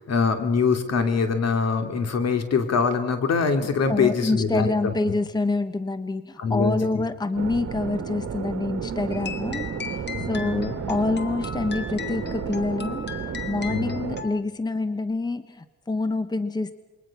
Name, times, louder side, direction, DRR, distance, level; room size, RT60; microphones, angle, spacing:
voice 1, 0.0-4.9 6.4-7.0 10.1-10.8 13.7-14.0, left 5 dB, 55° left, 7 dB, 2.9 m, -24 dB
voice 2, 3.9-13.1 13.5-16.7, left 3 dB, 15° left, 12 dB, 1.0 m, -27 dB
sound 1, 7.4-14.2, right 7 dB, 55° right, 2.0 m, -32 dB
Music Box Playing Fur Elise, 9.1-14.4, left 7 dB, 35° left, 1.6 m, -37 dB
28.0 x 22.0 x 6.0 m, 1.2 s
cardioid pair, 90°, 30 cm